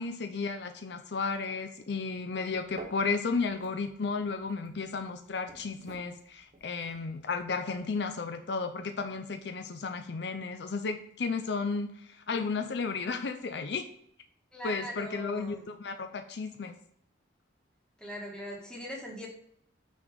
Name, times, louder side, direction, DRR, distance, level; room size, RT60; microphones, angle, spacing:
voice 1, 0.0-13.8 14.6-16.8, left 4 dB, 60° left, 6 dB, 0.5 m, -33 dB
sound 1, 2.5-8.0, right 2 dB, 40° right, 1.1 m, -52 dB
voice 2, 14.5-15.7 18.0-19.3, equal, 5° left, -2 dB, 1.5 m, -41 dB
5.9 x 4.2 x 5.0 m, 0.69 s
head